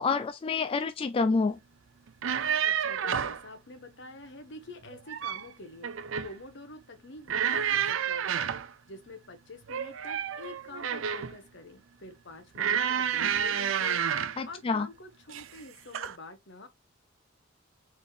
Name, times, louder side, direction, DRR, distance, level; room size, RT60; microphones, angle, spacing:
voice 1, 0.0-1.6 14.4-14.9, left 4 dB, 30° left, 0.3 m, -28 dB
sound 1, 2.1-3.4 4.9-5.5 5.8-6.4 7.3-8.7 9.7-11.4 12.6-14.4 15.3-15.6 15.9-16.2, right 8 dB, 75° right, 0.5 m, -30 dB
voice 2, 2.6-5.9 6.2-8.5 8.9-16.7, left 2 dB, 65° left, 1.1 m, -47 dB
4.1 x 3.5 x 3.2 m
head